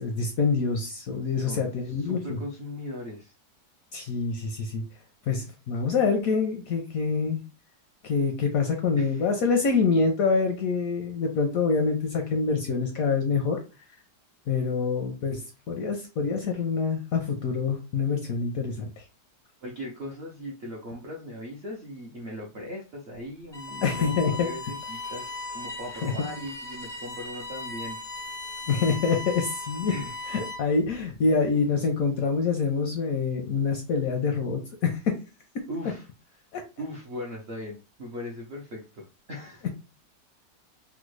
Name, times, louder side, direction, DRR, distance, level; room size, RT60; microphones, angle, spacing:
voice 1, 0.0-2.4 3.9-4.8 5.3-7.4 8.0-13.6 14.5-15.4 15.7-18.8 23.8-24.5 26.0-26.3 28.7-29.9 30.3-35.2 36.5-36.6, left 5 dB, 70° left, 3 dB, 0.8 m, -26 dB
voice 2, 1.5-3.3 9.0-9.3 19.6-28.0 29.8-30.2 35.7-36.1 36.8-39.7, left 1 dB, 70° right, -2 dB, 0.6 m, -39 dB
Bowed string instrument, 23.5-30.8, left 2 dB, 40° left, 0.3 m, -37 dB
3.5 x 2.1 x 3.1 m, 0.30 s
omnidirectional pair, 1.9 m